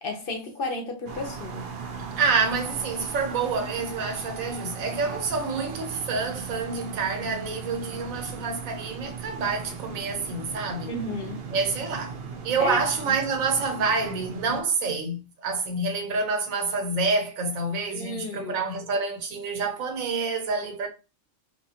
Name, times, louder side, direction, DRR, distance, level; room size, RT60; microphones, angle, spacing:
voice 1, 0.0-1.8 10.9-11.4 12.6-12.8 13.1-13.2 17.9-18.6, left 2 dB, 55° left, 0.7 m, -33 dB
sound 1, 1.1-14.6, right 5 dB, 60° right, 0.7 m, -38 dB
voice 2, 2.2-10.9 11.5-12.2 12.4-20.9, right 4 dB, 85° right, 1.2 m, -27 dB
3.2 x 2.7 x 2.8 m
omnidirectional pair, 1.4 m